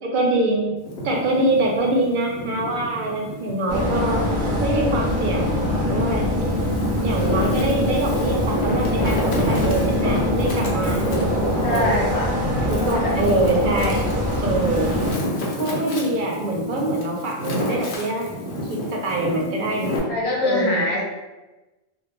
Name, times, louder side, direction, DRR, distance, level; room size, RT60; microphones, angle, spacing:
voice 1, 0.0-0.8 1.0-4.2 4.6-6.3 7.0-11.8 12.7-14.1 14.4-15.0 15.6-18.3 18.6-19.9 20.4-20.9, right 1 dB, 60° right, 0 dB, 0.6 m, -24 dB
Wind, 0.8-3.6 4.1-5.4 6.0-20.0, equal, 85° left, 0.8 m, -30 dB
sound 1, 3.7-15.1, left 1 dB, 25° right, 0.3 m, -23 dB
voice 2, 11.6-12.3 12.8-13.1 20.1-21.0, left 1 dB, 40° left, -3 dB, 0.6 m, -23 dB
2.1 x 2.1 x 3.0 m, 1.1 s
omnidirectional pair, 1.1 m